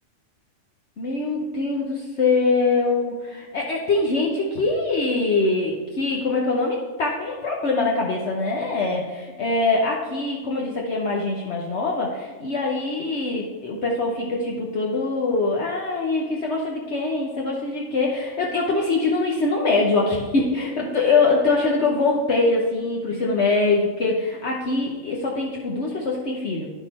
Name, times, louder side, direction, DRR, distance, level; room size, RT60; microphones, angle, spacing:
voice 1, 1.0-26.7, left 3 dB, 60° left, -2 dB, 1.2 m, -23 dB
10.0 x 6.1 x 4.2 m, 1.3 s
omnidirectional pair, 1.4 m